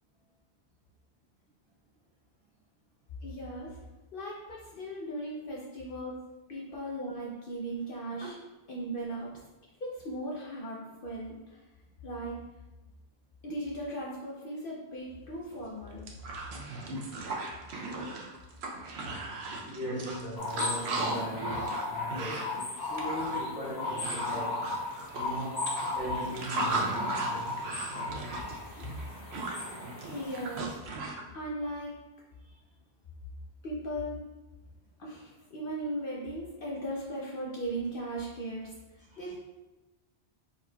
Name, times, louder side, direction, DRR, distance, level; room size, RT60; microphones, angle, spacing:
voice 1, 3.2-3.8 4.1-6.1 6.5-8.4 8.7-9.4 9.8-11.6 12.0-12.4 13.4-16.1 30.1-30.8 31.3-32.0 33.6-34.2 35.0-39.4, right 1 dB, 60° left, 0.9 m, -37 dB
sound 1, 15.5-15.6 15.9-31.2, right 3 dB, 75° right, 0.9 m, -37 dB
voice 2, 19.6-24.7 25.1-27.6 29.5-30.1 32.5-32.6 39.1-39.2, equal, 5° right, 1.5 m, -39 dB
sound 2, 20.4-30.6, left 3 dB, 85° left, 1.4 m, -36 dB
4.6 x 4.1 x 2.3 m
omnidirectional pair, 1.1 m